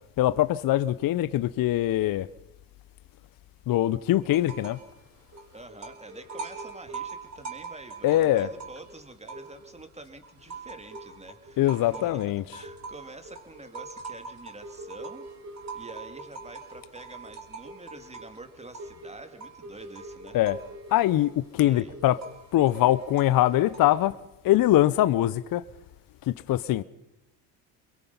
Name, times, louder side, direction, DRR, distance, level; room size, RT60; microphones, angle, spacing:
voice 1, 0.2-2.3 3.7-4.8 8.0-8.5 11.6-12.6 20.3-20.6 20.9-22.2 22.5-24.1 24.4-25.6 26.3-26.8, left 14 dB, 50° left, 0.7 m, -23 dB
sound 1, 4.3-4.9 5.2-9.8 10.2-24.1, right 4 dB, 35° right, 5.5 m, -43 dB
voice 2, 5.5-11.6 11.9-15.3 15.7-20.4 21.6-21.9, right 2 dB, 15° right, 2.6 m, -47 dB
24.5 x 22.0 x 5.5 m
hypercardioid pair, 70°, 45 cm